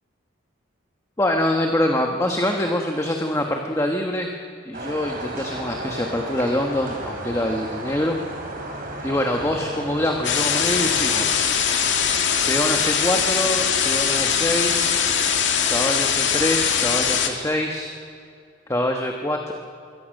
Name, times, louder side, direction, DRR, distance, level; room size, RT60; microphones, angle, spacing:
voice 1, 1.2-4.3 4.6-8.2 9.0-11.5 12.5-15.0 15.7-17.9 18.7-19.5, left 1 dB, 15° left, 2 dB, 1.3 m, -24 dB
sound 1, 4.7-11.4, right 1 dB, 45° right, 4.4 m, -33 dB
sound 2, 10.2-17.3, left 7 dB, 65° left, 2.2 m, -21 dB
26.5 x 22.5 x 6.6 m, 2.4 s
head